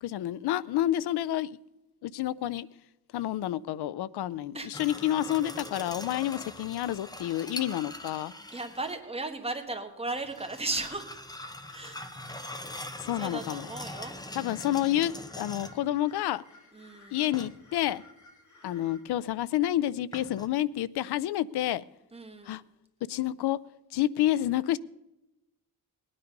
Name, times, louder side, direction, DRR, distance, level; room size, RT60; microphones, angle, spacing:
voice 1, 0.0-1.5 2.0-2.7 3.1-8.3 13.0-13.7 14.3-16.4 17.1-18.0 18.6-21.8 22.5-22.6 23.1-23.6 23.9-24.8, left 13 dB, 85° left, 0.6 m, -29 dB
sound 1, 4.7-9.0 10.1-15.9 17.3-17.9 20.1-20.5, left 1 dB, 10° left, 0.8 m, -42 dB
voice 2, 8.5-11.1 11.7-12.0 13.2-14.1 16.7-17.2 22.1-22.6, right 2 dB, 15° right, 1.4 m, -36 dB
sound 2, 11.7-19.0, left 2 dB, 50° left, 2.3 m, -56 dB
19.0 x 9.8 x 5.3 m
wide cardioid pair, 150°, 38 cm